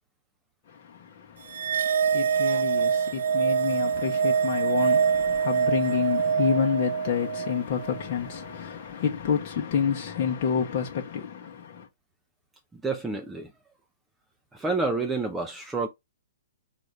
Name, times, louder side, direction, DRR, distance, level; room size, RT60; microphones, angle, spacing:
voice 1, 0.7-11.9, left 7 dB, 45° left, 0.9 m, -29 dB
sound 1, 1.5-8.1, right 7 dB, 65° right, 0.4 m, -25 dB
voice 2, 12.7-13.5 14.5-15.9, right 3 dB, 10° right, 0.5 m, -29 dB
4.0 x 2.5 x 3.3 m
figure-of-eight pair, 125°, 0 cm